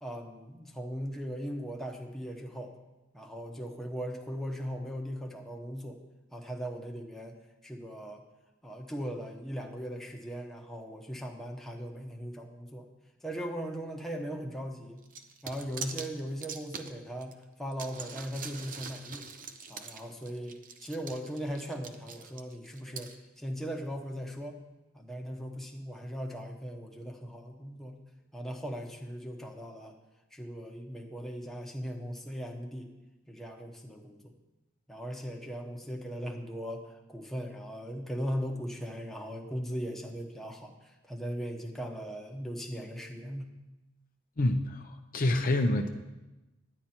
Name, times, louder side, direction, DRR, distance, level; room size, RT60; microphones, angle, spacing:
voice 1, 0.0-2.7 3.1-6.0 6.3-7.4 7.6-8.2 8.6-12.9 13.2-15.0 15.4-19.3 19.7-24.6 24.9-28.0 28.3-29.9 30.3-32.9 33.3-34.3 34.9-43.5, equal, ahead, 1 dB, 1.0 m, -39 dB
sound 1, 15.0-17.3 17.7-23.2, right 5 dB, 40° right, 0.7 m, -43 dB
voice 2, 44.4-45.9, left 1 dB, 45° left, 5 dB, 0.7 m, -27 dB
11.0 x 9.9 x 4.4 m, 1.0 s
head